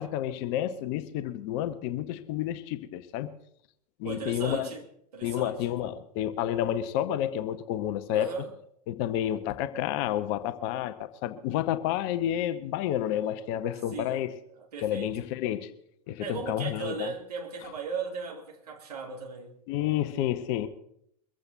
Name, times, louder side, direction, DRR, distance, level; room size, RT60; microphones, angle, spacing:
voice 1, 0.0-3.3 4.0-4.7 5.2-8.3 8.9-14.3 14.8-15.7 16.1-17.1 19.7-20.7, left 11 dB, 45° left, 1.0 m, -30 dB
voice 2, 4.0-4.8 5.1-5.8 8.1-8.5 13.9-15.2 16.2-19.6, right 5 dB, 70° right, 2.8 m, -37 dB
23.0 x 15.0 x 2.7 m
figure-of-eight pair, 95°, 21 cm